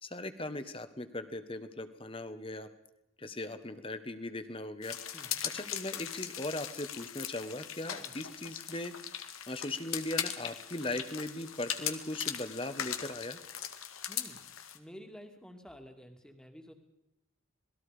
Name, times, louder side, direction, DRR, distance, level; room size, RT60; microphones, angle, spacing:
voice 1, 0.0-2.7 3.2-5.0 5.5-8.9 9.5-13.4, left 2 dB, 25° left, 10 dB, 1.4 m, -39 dB
sound 1, 4.8-14.8, left 10 dB, 85° left, 2.0 m, -39 dB
voice 2, 5.1-5.4 8.0-8.2 14.1-14.4 14.7-16.7, equal, 5° left, 4 dB, 2.3 m, -51 dB
27.0 x 20.0 x 5.1 m, 0.84 s
head